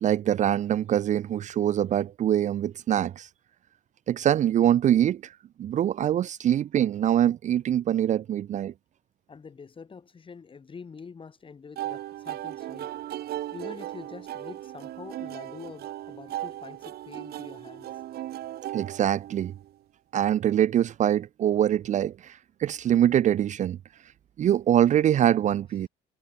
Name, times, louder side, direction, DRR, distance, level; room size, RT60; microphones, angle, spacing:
voice 1, 0.0-3.3 4.1-5.3 5.6-8.7 18.7-19.5 20.1-23.8 24.4-25.9, right 11 dB, 45° right, 0.5 m, -24 dB
voice 2, 9.3-12.9 13.5-18.0, left 5 dB, 30° left, 6.1 m, -45 dB
sound 1, 11.8-19.7, right 13 dB, 70° right, 3.0 m, -37 dB
cardioid pair, 110°, 17 cm